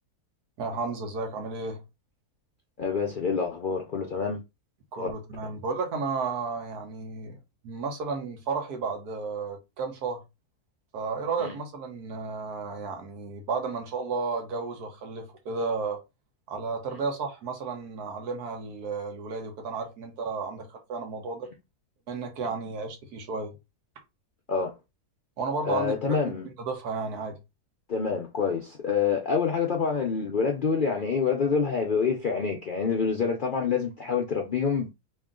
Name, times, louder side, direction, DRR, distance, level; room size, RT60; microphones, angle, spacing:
voice 1, 0.6-1.8 4.9-7.4 7.6-10.2 10.9-16.0 16.5-21.5 22.1-23.5 25.4-26.2 26.6-27.4, right 4 dB, 85° right, 1.5 m, -33 dB
voice 2, 2.8-4.4 5.0-5.1 11.4-11.5 24.5-24.8 25.6-26.5 27.9-34.9, left 5 dB, 65° left, 0.5 m, -27 dB
3.1 x 2.9 x 3.7 m
omnidirectional pair, 1.6 m